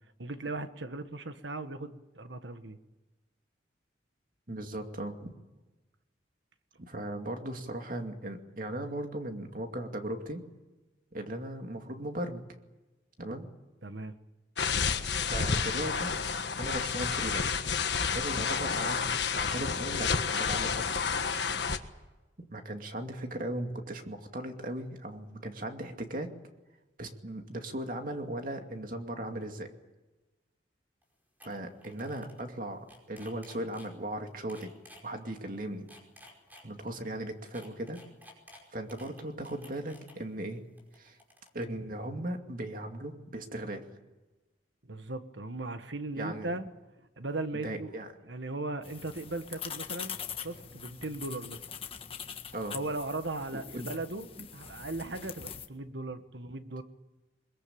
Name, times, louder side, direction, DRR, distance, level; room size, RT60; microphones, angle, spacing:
voice 1, 0.2-2.8 13.8-14.2 44.9-46.6 47.2-47.9 48.2-50.2 50.4-51.6 52.7-54.3 54.5-56.8, right 2 dB, 80° right, 9 dB, 1.6 m, -37 dB
voice 2, 4.5-5.3 6.8-10.4 11.1-12.4 13.2-13.5 15.2-16.1 16.5-17.6 18.1-19.0 19.3-21.0 22.4-26.3 27.0-29.7 31.4-34.7 35.0-35.9 36.6-38.0 38.7-40.6 41.0-41.2 41.5-43.8 46.2-46.5 47.5-48.1 52.5-52.8 53.5-53.9 54.4-54.5, right 1 dB, 45° right, 5 dB, 2.4 m, -37 dB
sound 1, 14.6-21.8, left 5 dB, 70° left, 1.5 m, -30 dB
sound 2, 31.0-31.1 31.4-31.5 31.8-32.4 32.7-33.9 34.5-35.0 35.7-36.9 37.5-40.1 40.8-41.6, left 1 dB, 10° right, 5.2 m, -53 dB
sound 3, 48.8-55.7, left 7 dB, 30° left, 1.5 m, -43 dB
22.0 x 22.0 x 8.8 m, 1.1 s
head